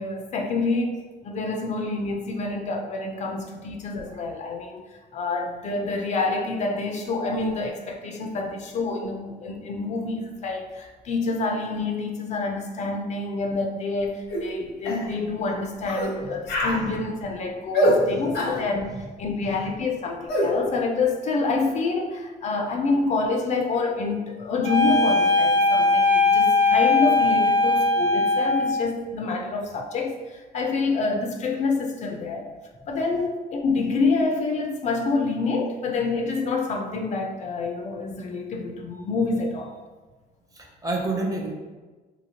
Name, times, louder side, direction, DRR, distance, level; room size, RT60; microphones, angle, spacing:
voice 1, 0.0-32.5 32.9-39.7, left 3 dB, 45° left, 3 dB, 0.4 m, -27 dB
voice 2, 4.0-4.4 8.2-8.5 16.2-16.3 16.6-17.1 17.9-18.6 18.9-19.1 19.4-19.7 40.5-41.5, right 2 dB, 20° right, 0 dB, 0.6 m, -33 dB
sound 1, 14.3-14.5 14.9-15.1 15.9-16.1 16.5-16.8 17.7-18.0 18.3-18.6 20.3-20.5, equal, 90° left, 0.9 m, -23 dB
sound 2, 24.6-28.8, left 3 dB, 75° right, 0.9 m, -20 dB
2.8 x 2.7 x 2.7 m, 1.3 s
cardioid pair, 110°, 17 cm